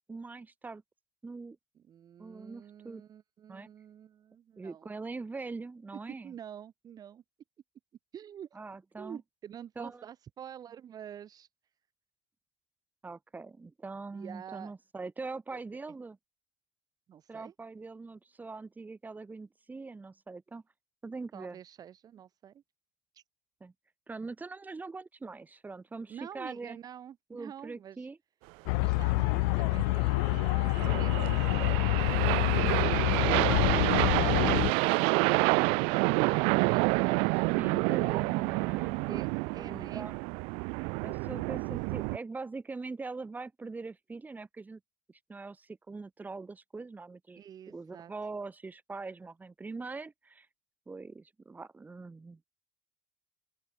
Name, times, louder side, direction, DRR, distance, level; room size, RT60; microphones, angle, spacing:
voice 1, 0.1-0.8 1.2-1.6 2.2-3.0 3.5-3.7 4.6-6.3 8.5-9.2 9.8-10.0 13.0-16.2 17.3-20.6 21.0-21.6 23.6-23.7 24.1-26.8 27.3-28.2 37.3-39.2 39.6-40.1 41.0-44.8 45.1-47.4 47.7-50.5 50.9-52.4, right 3 dB, 15° right, 5.4 m, -42 dB
voice 2, 1.7-4.9 6.2-7.2 8.1-8.5 9.0-11.5 14.1-14.7 15.5-15.6 17.1-17.5 21.3-22.6 23.1-23.2 26.1-28.1 28.8-37.2 39.1-40.1 47.4-48.1, right 9 dB, 40° right, 3.4 m, -47 dB
sound 1, 28.7-34.7, left 32 dB, 75° left, 0.4 m, -27 dB
sound 2, 28.8-42.2, right 33 dB, 65° right, 0.4 m, -29 dB
open air
supercardioid pair, 95°, 10 cm